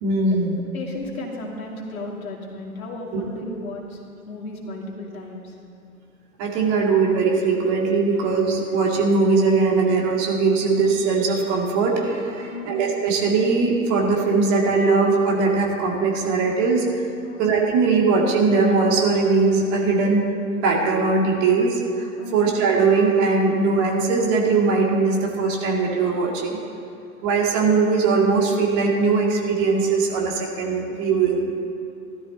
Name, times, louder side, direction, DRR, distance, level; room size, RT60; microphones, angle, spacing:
voice 1, 0.0-0.6 3.1-3.2 6.4-16.8 17.4-20.3 20.6-26.6 27.2-31.5, right 4 dB, 35° right, -1 dB, 2.2 m, -20 dB
voice 2, 0.7-4.0 4.3-5.6 12.4-12.7 17.2-17.5 22.2-22.4, left 2 dB, 70° left, -3 dB, 2.8 m, -34 dB
15.0 x 12.5 x 4.0 m, 2.4 s
figure-of-eight pair, 105°, 44 cm